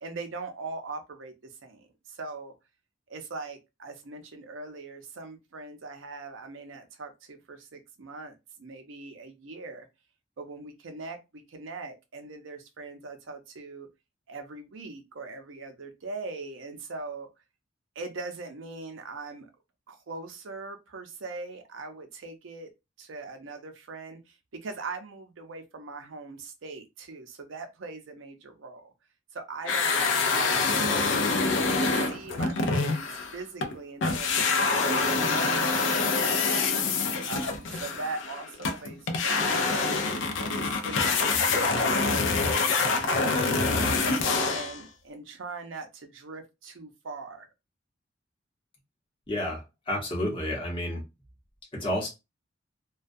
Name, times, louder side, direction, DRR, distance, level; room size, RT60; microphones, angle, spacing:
voice 1, 0.0-2.5 3.1-9.9 10.4-13.9 14.3-17.3 18.0-19.5 19.9-22.7 23.0-28.9 29.3-31.4 31.9-36.7 37.2-39.9 40.3-44.0 44.5-47.5, right 3 dB, 80° right, 0.6 m, -41 dB
sound 1, 29.6-33.7 34.0-44.8, left 4 dB, 70° left, 0.4 m, -26 dB
voice 2, 49.3-51.0 51.7-52.1, left 1 dB, 25° left, 0.9 m, -30 dB
2.2 x 2.2 x 2.5 m
head